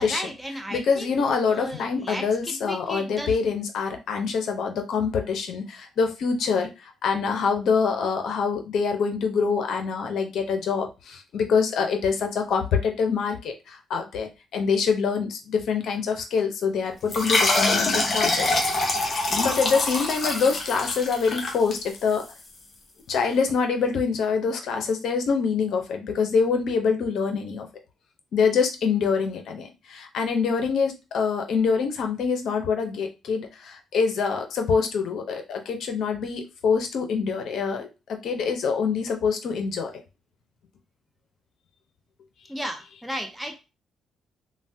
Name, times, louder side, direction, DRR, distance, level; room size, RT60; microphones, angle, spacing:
voice 1, 0.0-3.4 42.5-43.6, equal, ahead, 2 dB, 0.6 m, -35 dB
voice 2, 0.7-18.5 19.3-22.2 23.1-27.7 28.3-37.9 38.2-39.9, left 5 dB, 70° left, 4 dB, 0.6 m, -25 dB
sound 1, 17.1-22.2, left 2 dB, 40° left, 0.8 m, -25 dB
3.2 x 2.1 x 2.7 m, 0.28 s
cardioid pair, 90°, 0 cm